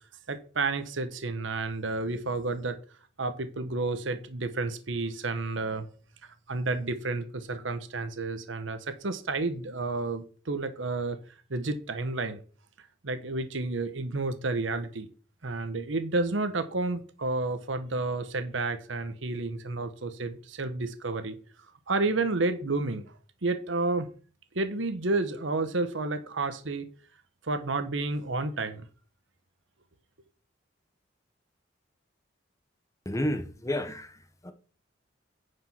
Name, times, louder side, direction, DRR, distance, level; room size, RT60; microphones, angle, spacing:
voice 1, 0.3-2.8 3.2-5.9 6.5-11.2 11.5-12.4 13.0-15.1 15.4-21.4 21.9-23.0 23.4-24.1 24.5-26.9 27.4-28.9, right 3 dB, 75° right, 1.1 m, -30 dB
voice 2, 33.0-34.1 34.4-34.5, left 1 dB, 15° left, 1.1 m, -30 dB
9.6 x 5.2 x 5.9 m
head